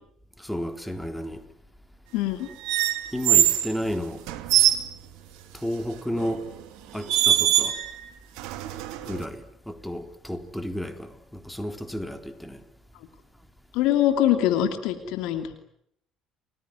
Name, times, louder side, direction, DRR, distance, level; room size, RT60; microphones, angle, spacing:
voice 1, 0.4-1.4 3.1-4.2 5.5-6.4 6.9-7.8 9.1-12.6, equal, 5° left, 3.9 m, -32 dB
voice 2, 2.1-2.5 13.7-15.5, left 12 dB, 65° left, 2.8 m, -23 dB
sound 1, 2.6-3.7 4.3-4.8 6.2-6.4 7.1-8.0 8.4-9.2, right 11 dB, 65° right, 2.3 m, -22 dB
30.0 x 20.0 x 9.6 m
figure-of-eight pair, 55°, 0 cm